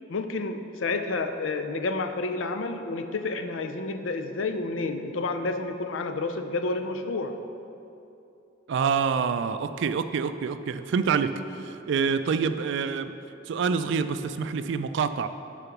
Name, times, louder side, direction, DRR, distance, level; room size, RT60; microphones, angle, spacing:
voice 1, 0.1-7.4, left 3 dB, 80° left, 7 dB, 0.5 m, -30 dB
voice 2, 8.7-13.1 13.5-15.3, right 6 dB, 65° right, 11 dB, 0.3 m, -27 dB
6.7 x 5.0 x 5.9 m, 2.8 s
head